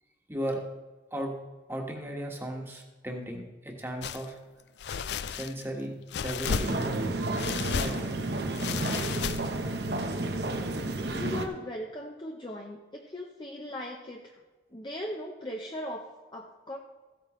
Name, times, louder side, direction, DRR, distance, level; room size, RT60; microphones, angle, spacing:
voice 1, 0.3-0.6 1.1-1.4 1.7-4.4 5.3-7.0 7.6-9.0, right 1 dB, 15° right, 0 dB, 1.4 m, -36 dB
sound 1, 4.0-4.3 4.8-5.7 6.1-7.0 7.4-8.1 8.5-9.7, left 7 dB, 70° left, 0.4 m, -33 dB
sound 2, 6.4-11.5, right 2 dB, 70° right, 1.0 m, -31 dB
voice 2, 11.0-14.4 14.7-16.8, left 1 dB, 25° left, 1 dB, 0.7 m, -39 dB
15.0 x 8.7 x 3.1 m, 1.3 s
head